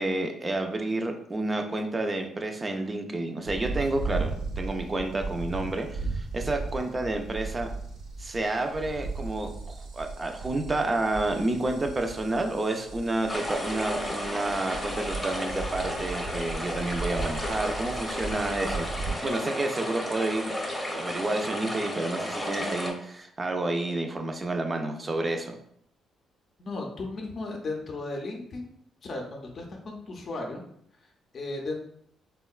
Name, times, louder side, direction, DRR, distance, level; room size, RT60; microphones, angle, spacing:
voice 1, 0.0-4.3 4.6-7.7 8.2-18.9 19.2-20.5 20.9-25.6, right 2 dB, 30° right, 4 dB, 0.4 m, -30 dB
sound 1, 3.5-19.1, right 3 dB, 85° right, 0.6 m, -36 dB
sound 2, 13.3-22.9, left 1 dB, 10° left, 0.7 m, -33 dB
voice 2, 26.6-28.7 29.0-30.6 31.0-31.8, left 2 dB, 50° left, 1 dB, 0.5 m, -36 dB
3.5 x 2.1 x 2.3 m, 0.69 s
cardioid pair, 90°, 0 cm